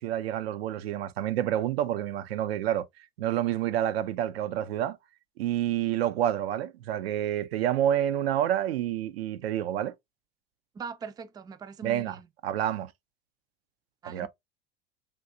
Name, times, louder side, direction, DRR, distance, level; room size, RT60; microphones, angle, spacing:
voice 1, 0.0-2.9 3.2-5.0 5.4-9.9 11.8-12.2 12.4-12.9 14.0-14.3, right 11 dB, 80° right, 0.5 m, -28 dB
voice 2, 10.7-12.3 14.0-14.3, right 5 dB, 15° right, 0.3 m, -41 dB
3.6 x 2.8 x 2.4 m
hypercardioid pair, 85°, 30 cm